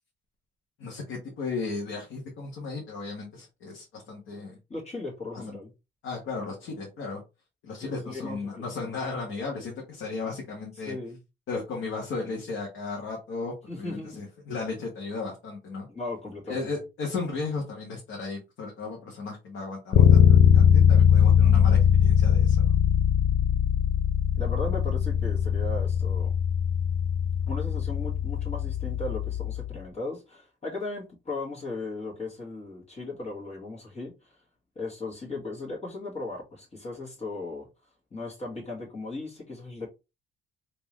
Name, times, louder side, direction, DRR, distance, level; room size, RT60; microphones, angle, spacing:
voice 1, 0.8-4.6 5.3-5.6 6.0-7.2 7.6-10.9 11.5-15.9 16.5-22.8, left 4 dB, 80° left, 1.3 m, -35 dB
voice 2, 4.7-5.7 7.7-8.7 10.9-11.2 13.7-14.2 15.9-16.7 24.4-26.3 27.5-34.4 34.8-37.7 38.1-39.9, left 2 dB, 35° left, 1.8 m, -37 dB
Bass guitar, 19.9-29.8, left 8 dB, 65° left, 0.6 m, -21 dB
3.7 x 2.9 x 3.0 m
cardioid pair, 90°, 20 cm